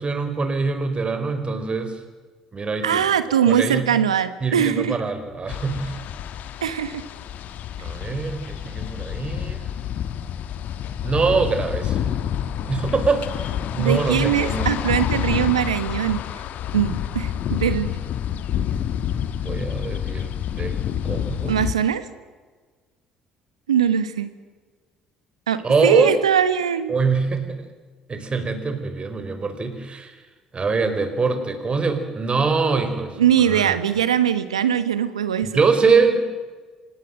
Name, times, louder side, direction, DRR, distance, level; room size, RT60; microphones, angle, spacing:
voice 1, 0.0-2.0 2.5-3.1 3.5-3.9 4.4-6.0 7.8-9.7 11.0-12.0 12.7-14.7 19.4-20.8 21.0-21.5 25.6-26.2 26.9-27.6 28.1-30.1 30.5-33.7 35.5-36.2, right 4 dB, 35° right, 8 dB, 4.4 m, -23 dB
voice 2, 2.8-4.9 6.6-7.0 13.8-16.2 16.7-17.9 21.5-22.0 23.7-24.3 25.5-26.9 33.2-35.5, right 9 dB, 85° right, 13 dB, 1.2 m, -21 dB
sound 1, 5.5-21.7, left 10 dB, 60° left, 1.4 m, -28 dB
26.0 x 18.5 x 7.7 m, 1.4 s
hypercardioid pair, 55°, 3 cm